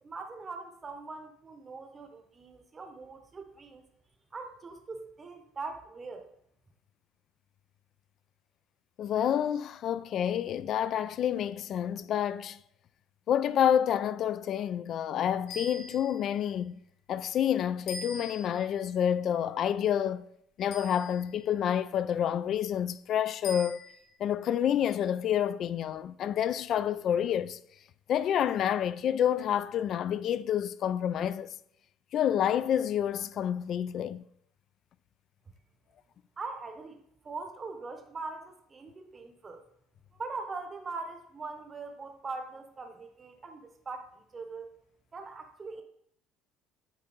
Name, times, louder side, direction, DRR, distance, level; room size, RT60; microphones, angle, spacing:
voice 1, 0.0-3.8 4.3-6.2 36.4-39.6 40.1-44.8 45.1-45.8, right 4 dB, 25° right, 0.8 m, -42 dB
voice 2, 9.0-12.6 13.3-16.8 17.1-20.3 20.6-23.8 24.2-27.6 28.1-31.5 32.1-34.2, left 9 dB, 45° left, 0.3 m, -28 dB
sound 1, 15.5-16.4 17.9-18.7 20.7-21.4 23.4-24.1, left 2 dB, 80° left, 1.5 m, -43 dB
8.2 x 4.3 x 3.9 m
cardioid pair, 135°, 0 cm